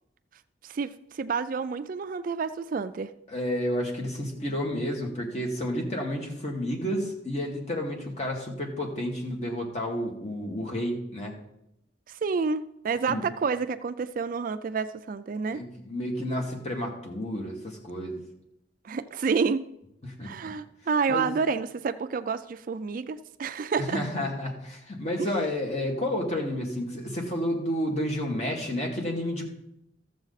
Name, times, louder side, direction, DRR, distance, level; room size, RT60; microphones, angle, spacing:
voice 1, 0.6-3.1 12.1-15.6 18.8-19.6 20.2-24.0 25.2-25.3, right 5 dB, 45° right, 12 dB, 0.4 m, -29 dB
voice 2, 3.3-11.4 13.1-13.2 15.5-18.2 20.0-20.5 21.1-21.3 23.8-29.5, left 1 dB, 35° left, 0 dB, 2.2 m, -31 dB
13.5 x 7.3 x 4.1 m, 0.81 s
head